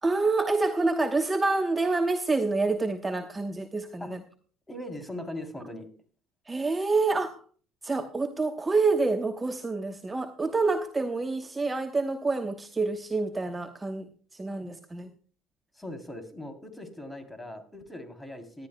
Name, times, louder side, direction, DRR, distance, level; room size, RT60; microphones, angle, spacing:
voice 1, 0.0-4.2 6.5-7.4 7.8-14.1 14.4-15.1, right 3 dB, 20° right, 7 dB, 1.0 m, -27 dB
voice 2, 4.7-5.9 15.7-18.7, left 1 dB, 10° left, 6 dB, 3.2 m, -40 dB
18.5 x 11.5 x 2.2 m, 0.42 s
supercardioid pair, 75°, 0 cm